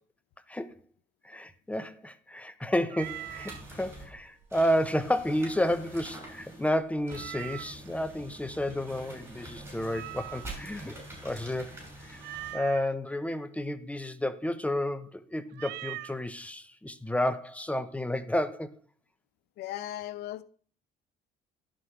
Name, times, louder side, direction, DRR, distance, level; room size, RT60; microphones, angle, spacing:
voice 1, 1.2-11.0 11.2-18.7, left 1 dB, 10° left, 0.7 m, -31 dB
Meow, 2.9-3.6 7.1-7.9 9.9-10.7 12.2-12.9 15.5-16.2, right 16 dB, 80° right, 0.5 m, -41 dB
sound 1, 3.0-12.5, right 1 dB, 15° right, 5.8 m, -46 dB
voice 2, 19.6-20.4, left 13 dB, 75° left, 0.7 m, -37 dB
11.0 x 6.4 x 4.5 m
cardioid pair, 110°, 17 cm